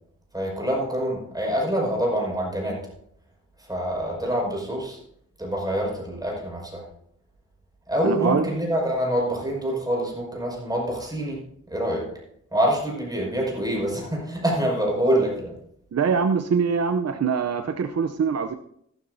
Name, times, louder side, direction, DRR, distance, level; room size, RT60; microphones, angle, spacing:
voice 1, 0.3-2.9 3.6-5.0 5.4-6.9 7.9-11.4 11.7-12.1 12.5-15.5, equal, 10° right, -2 dB, 5.6 m, -26 dB
voice 2, 8.0-8.5 15.9-18.5, right 6 dB, 55° right, 7 dB, 0.6 m, -23 dB
14.5 x 12.5 x 2.7 m, 0.70 s
wide cardioid pair, 90°, 31 cm